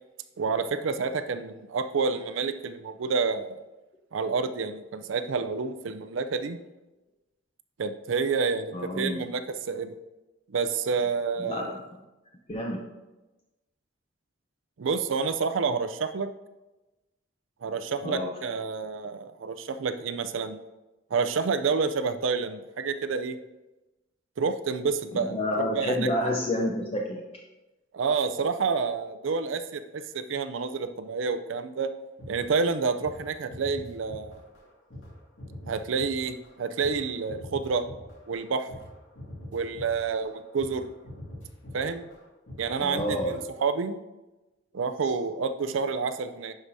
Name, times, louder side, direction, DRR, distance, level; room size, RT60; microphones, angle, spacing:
voice 1, 0.4-3.6 4.1-6.6 7.8-10.0 10.5-11.8 14.8-16.3 17.6-20.6 21.1-23.4 24.4-26.0 27.9-31.9 32.3-34.4 35.7-37.8 38.3-38.7 39.5-40.9 41.7-42.1 42.6-44.0 44.7-46.5, right 5 dB, 75° right, 10 dB, 0.5 m, -29 dB
voice 2, 8.7-9.3 11.4-11.8 12.5-12.8 18.0-18.3 25.1-27.2 42.8-43.4, left 1 dB, 30° left, 0 dB, 0.6 m, -29 dB
sound 1, 32.2-32.7 33.0-33.2 33.5-34.6 34.9-42.7 42.9-43.4, left 1 dB, 70° left, 2.2 m, -43 dB
11.5 x 4.9 x 2.7 m, 1.1 s
head